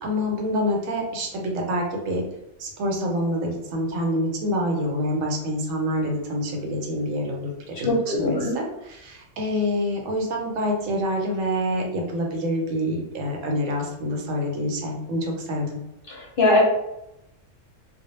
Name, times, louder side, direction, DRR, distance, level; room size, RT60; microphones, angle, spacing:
voice 1, 0.0-2.2 2.6-15.8, equal, 80° right, 1 dB, 1.0 m, -27 dB
voice 2, 7.8-8.6 16.1-16.6, left 2 dB, 55° left, -3 dB, 0.7 m, -21 dB
2.2 x 2.0 x 2.9 m, 0.86 s
omnidirectional pair, 1.3 m